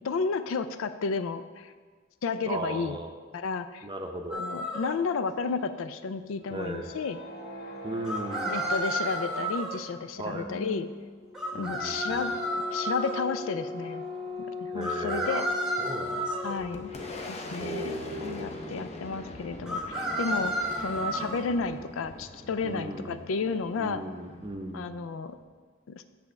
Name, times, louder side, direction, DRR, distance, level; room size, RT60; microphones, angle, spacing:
voice 1, 0.0-1.7 2.2-3.0 3.3-3.9 4.3-7.2 8.5-10.9 11.5-12.3 12.7-14.0 14.6-15.4 16.4-16.9 17.2-17.9 18.2-24.0 24.7-25.4 25.9-26.0, left 4 dB, 85° left, 11 dB, 0.4 m, -32 dB
voice 2, 2.4-3.1 3.8-4.5 6.5-6.9 7.8-8.6 10.2-10.5 11.5-12.4 14.7-15.5 15.8-16.7 17.6-18.9 22.6-23.3 23.8-24.9, right 2 dB, 25° right, 4 dB, 0.6 m, -37 dB
sound 1, 4.3-4.9 8.0-9.8 11.3-13.2 14.8-16.5 19.7-21.4, right 1 dB, 5° right, 1.0 m, -31 dB
sound 2, 6.2-17.4, left 3 dB, 55° left, 1.6 m, -39 dB
Boom, 16.1-25.5, left 1 dB, 35° left, 0.7 m, -43 dB
8.2 x 3.5 x 6.4 m, 1.5 s
head